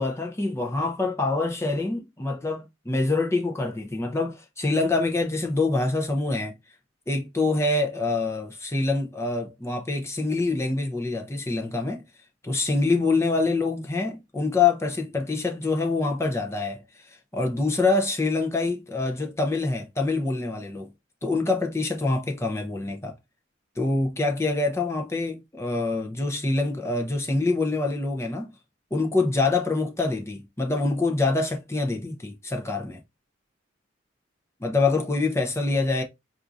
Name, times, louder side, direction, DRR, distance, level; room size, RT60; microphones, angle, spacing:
voice 1, 0.0-6.5 7.1-12.0 12.4-16.8 17.1-20.9 21.2-23.1 23.8-28.5 28.9-33.0 34.6-36.0, left 3 dB, 15° left, 0.5 m, -25 dB
4.3 x 2.5 x 2.5 m
head